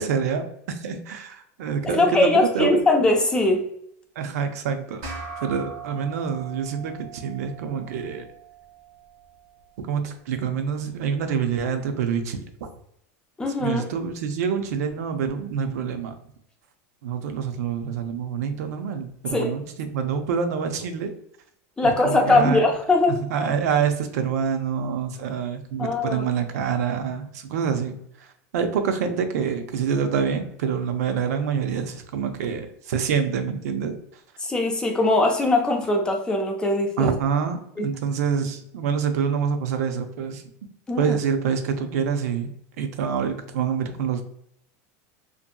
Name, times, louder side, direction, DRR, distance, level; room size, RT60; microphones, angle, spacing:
voice 1, 0.0-2.8 4.2-5.0 5.4-8.3 9.9-12.7 13.6-16.1 17.0-21.1 21.8-22.7 23.1-28.3 28.5-33.9 37.0-40.4 41.0-42.5 42.8-44.2, right 6 dB, 90° right, 6 dB, 0.5 m, -26 dB
voice 2, 1.8-3.7 13.4-13.8 19.3-19.5 21.8-23.2 25.8-26.2 34.4-37.1 37.8-37.9 40.9-41.2, left 2 dB, 10° left, 2 dB, 0.4 m, -21 dB
sound 1, 5.0-9.8, right 5 dB, 50° right, 0.7 m, -40 dB
2.6 x 2.6 x 2.2 m, 0.73 s
supercardioid pair, 155°, 8 cm